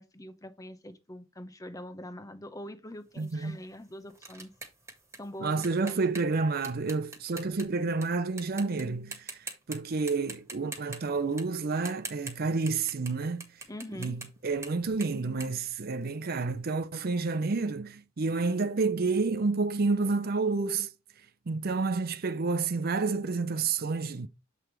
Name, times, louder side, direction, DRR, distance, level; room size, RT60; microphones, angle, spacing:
voice 1, 0.0-4.5 5.2-6.0 13.7-14.1, left 1 dB, 15° left, 0.8 m, -43 dB
sound 1, 3.2-8.1 8.4-8.8 9.1-9.8 10.1-16.4, right 3 dB, 15° right, 1.7 m, -44 dB
voice 2, 3.2-3.6 5.4-13.4 14.0-20.9 21.5-24.3, right 4 dB, 50° right, 0.6 m, -29 dB
7.7 x 3.4 x 4.6 m
head